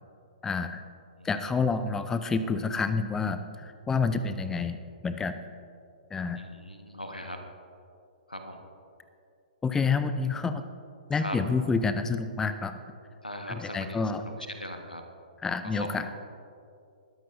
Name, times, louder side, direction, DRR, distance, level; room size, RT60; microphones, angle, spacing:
voice 1, 0.4-0.8 1.2-5.3 6.1-6.4 9.6-10.6 11.1-12.7 13.5-14.2 15.4-16.0, left 4 dB, 10° left, 10 dB, 0.5 m, -28 dB
voice 2, 6.3-7.4 8.3-8.6 11.1-11.4 13.2-15.0 15.6-16.1, equal, 90° left, 4 dB, 1.4 m, -39 dB
20.5 x 13.0 x 2.6 m, 2.5 s
figure-of-eight pair, 120°, 5 cm